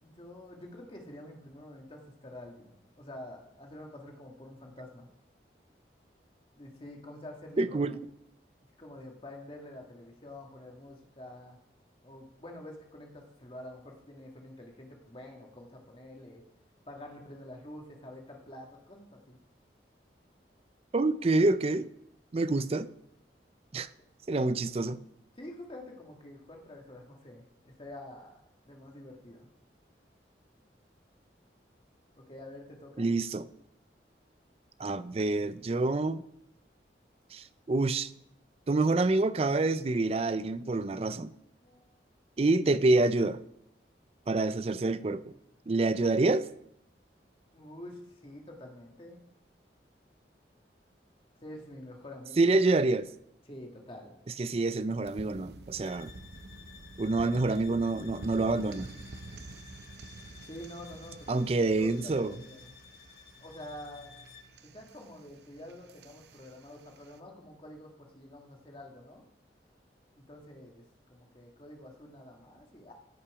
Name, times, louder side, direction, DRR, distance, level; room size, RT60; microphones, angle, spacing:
voice 1, 0.0-5.1 6.5-8.0 8.8-11.6 12.0-16.4 16.9-19.4 24.3-24.5 25.3-29.5 32.1-33.1 41.6-42.0 47.5-49.2 51.4-52.6 53.4-54.2 60.4-62.7 63.4-64.1 64.6-69.2 70.1-70.8 71.1-72.9, left 1 dB, 30° left, 1.8 m, -47 dB
voice 2, 7.6-7.9 20.9-21.9 22.3-22.9 23.7-23.9 24.3-25.0 33.0-33.4 34.8-36.2 37.3-38.1 38.7-41.3 42.4-43.4 44.3-45.2 45.7-46.5 52.4-53.1 54.4-56.1 57.0-58.9 61.3-62.3, right 2 dB, 35° right, 0.4 m, -27 dB
sound 1, 54.7-67.2, right 2 dB, 75° right, 0.7 m, -49 dB
sound 2, 55.8-64.6, left 7 dB, 55° left, 1.3 m, -55 dB
16.5 x 5.9 x 4.9 m
head